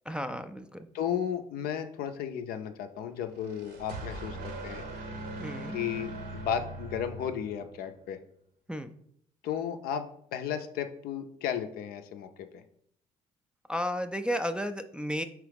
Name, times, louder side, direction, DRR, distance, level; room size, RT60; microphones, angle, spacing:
voice 1, 0.1-0.9 5.4-5.8 8.7-9.0 13.7-15.2, equal, 5° right, 6 dB, 0.3 m, -33 dB
voice 2, 0.9-4.9 5.7-8.2 9.4-12.6, left 8 dB, 65° left, 8 dB, 0.5 m, -34 dB
sound 1, 3.2-7.8, right 2 dB, 65° right, 0.8 m, -40 dB
4.6 x 3.0 x 3.4 m, 0.69 s
hypercardioid pair, 50°, 17 cm